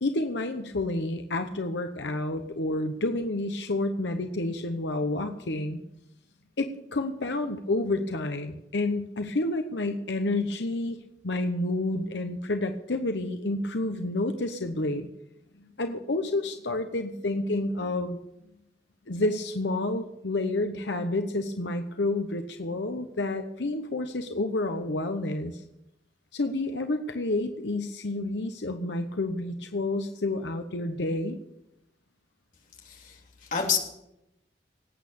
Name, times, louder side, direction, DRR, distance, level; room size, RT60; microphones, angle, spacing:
voice 1, 0.0-5.8 6.6-11.0 11.2-15.1 15.6-18.2 19.1-25.6 26.3-31.4, left 2 dB, 85° left, 6 dB, 1.0 m, -29 dB
voice 2, 32.8-33.8, left 6 dB, 45° left, 0 dB, 3.3 m, -29 dB
19.0 x 8.7 x 7.0 m, 0.87 s
head